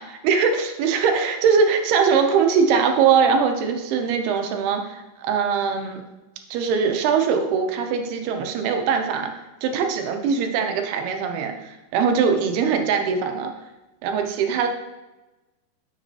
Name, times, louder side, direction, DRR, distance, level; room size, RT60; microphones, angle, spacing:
voice 1, 0.0-6.0 6.5-9.3 9.6-13.5 14.0-14.7, right 6 dB, 85° right, 5 dB, 2.7 m, -21 dB
6.8 x 5.9 x 2.8 m, 1.1 s
omnidirectional pair, 4.5 m